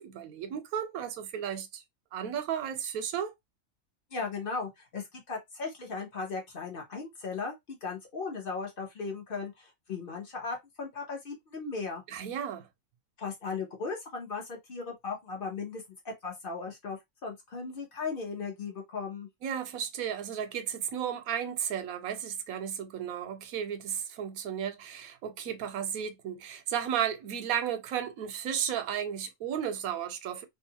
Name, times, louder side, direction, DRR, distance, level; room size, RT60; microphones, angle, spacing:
voice 1, 0.0-1.8 2.1-3.3 12.1-12.7 19.4-30.5, right 9 dB, 85° right, 1.1 m, -34 dB
voice 2, 4.1-12.0 13.2-19.3, left 4 dB, 45° left, 0.9 m, -37 dB
2.7 x 2.3 x 2.7 m
omnidirectional pair, 1.5 m